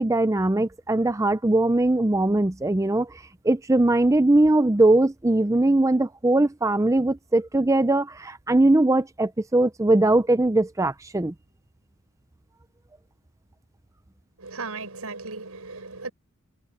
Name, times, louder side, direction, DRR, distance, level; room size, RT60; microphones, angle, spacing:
voice 1, 0.0-3.1 3.4-11.3, right 2 dB, 15° right, 0.5 m, -20 dB
voice 2, 14.4-16.1, right 3 dB, 80° right, 5.7 m, -36 dB
head